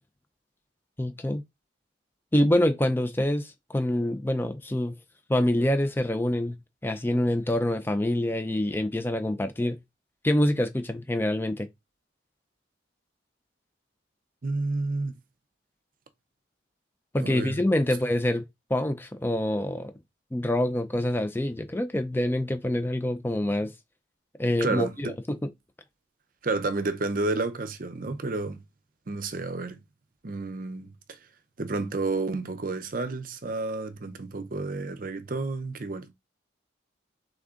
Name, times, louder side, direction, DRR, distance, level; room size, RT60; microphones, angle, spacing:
voice 1, 1.0-1.4 2.3-4.9 5.3-6.6 6.8-9.8 10.2-11.7 17.1-18.4 18.7-19.9 20.3-23.7 24.4-25.4, left 1 dB, 10° left, 0.4 m, -26 dB
voice 2, 14.4-15.1 17.2-17.6 24.6-25.1 26.4-28.6 29.1-29.8 30.2-31.2 31.6-36.1, right 3 dB, 45° right, 0.6 m, -30 dB
3.7 x 3.6 x 3.6 m
head